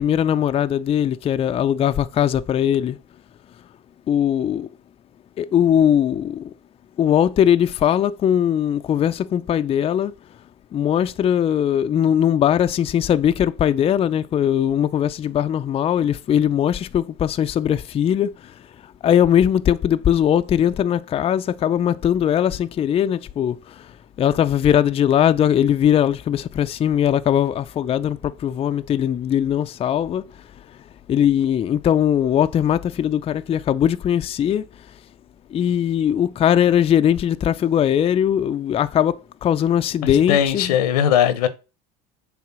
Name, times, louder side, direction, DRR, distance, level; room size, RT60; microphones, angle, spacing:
voice 1, 0.0-3.0 4.1-4.7 5.4-6.5 7.0-10.1 10.7-18.5 19.0-23.9 24.2-30.3 31.1-34.7 35.5-40.8, left 9 dB, 30° left, 0.4 m, -20 dB
voice 2, 40.0-41.5, left 9 dB, 85° left, 0.9 m, -19 dB
7.2 x 3.5 x 6.0 m
supercardioid pair, 90°, 19 cm